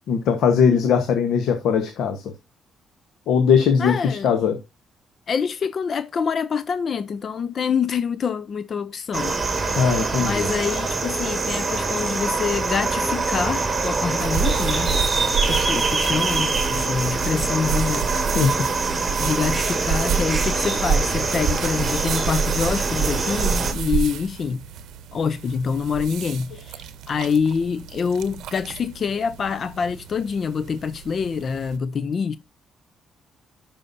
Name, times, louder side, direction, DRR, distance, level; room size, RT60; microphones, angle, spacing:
voice 1, 0.1-2.2 3.3-4.6 9.6-10.5 18.3-18.7, left 6 dB, 80° left, 1.0 m, -20 dB
voice 2, 3.8-4.3 5.3-9.3 10.2-15.0 15.4-18.1 19.2-24.6 25.1-32.4, left 6 dB, 50° left, 0.4 m, -26 dB
sound 1, 9.1-23.7, right 3 dB, 25° right, 2.2 m, -24 dB
sound 2, 14.2-31.8, right 7 dB, 80° right, 0.7 m, -29 dB
12.0 x 5.6 x 2.6 m
cardioid pair, 90°, 0 cm